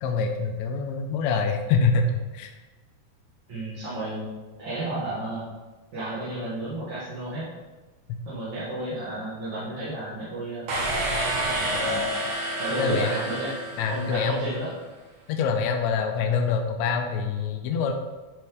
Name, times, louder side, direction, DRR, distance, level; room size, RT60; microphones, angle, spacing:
voice 1, 0.0-2.5 12.8-13.1 13.8-14.5 15.3-17.9, left 5 dB, 80° left, 4 dB, 1.9 m, -25 dB
voice 2, 3.5-4.3 4.6-5.4 5.9-7.5 8.3-10.8 11.5-12.3 12.6-13.6 13.9-14.7, right 1 dB, 45° right, -11 dB, 2.4 m, -32 dB
sound 1, 10.7-14.4, right 1 dB, 60° right, 2.4 m, -29 dB
10.5 x 4.4 x 3.6 m, 1.2 s
omnidirectional pair, 3.4 m